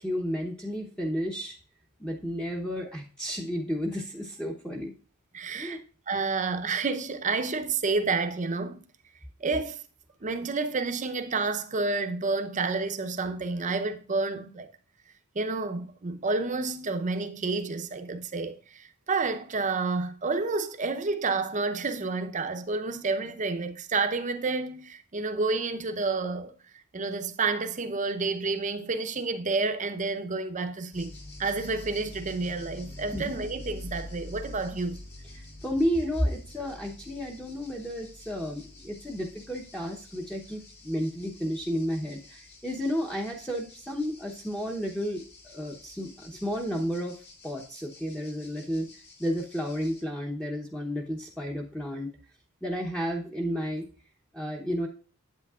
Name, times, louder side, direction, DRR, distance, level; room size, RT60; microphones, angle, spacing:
voice 1, 0.0-1.6 2.0-4.9 5.5-5.8 33.1-33.2 35.3-45.2 45.5-48.9 49.2-52.1 52.6-53.9 54.3-54.9, equal, 5° left, 0.8 m, -32 dB
voice 2, 5.3-5.8 6.1-8.8 9.4-9.8 10.2-14.7 15.3-26.5 26.9-31.1 31.4-35.0, right 3 dB, 35° right, 0.7 m, -29 dB
sound 1, 30.9-50.0, left 2 dB, 50° left, 2.0 m, -47 dB
8.2 x 8.2 x 2.4 m
head